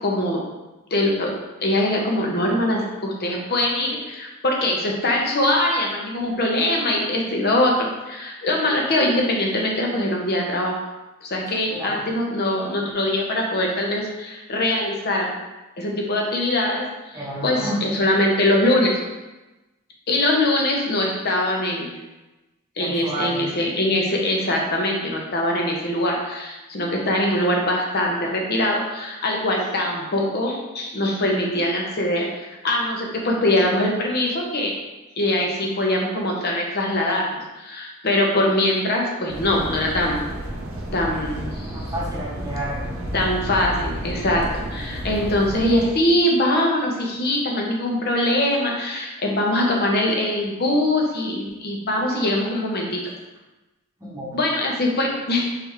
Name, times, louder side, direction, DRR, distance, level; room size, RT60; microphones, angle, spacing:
voice 1, 0.0-0.4 0.9-1.3 1.6-10.8 11.2-15.3 15.8-16.8 17.4-19.0 20.1-21.9 22.8-34.7 35.2-40.2 40.9-41.8 43.1-53.0 54.3-55.4, left 1 dB, 50° left, -1 dB, 0.9 m, -22 dB
voice 2, 11.5-12.0 17.1-17.9 22.8-23.4 41.7-42.8 54.0-54.4, equal, 15° right, -5 dB, 1.0 m, -30 dB
sound 1, 39.3-45.8, right 1 dB, 70° right, 0.8 m, -31 dB
4.9 x 3.4 x 3.1 m, 1.1 s
head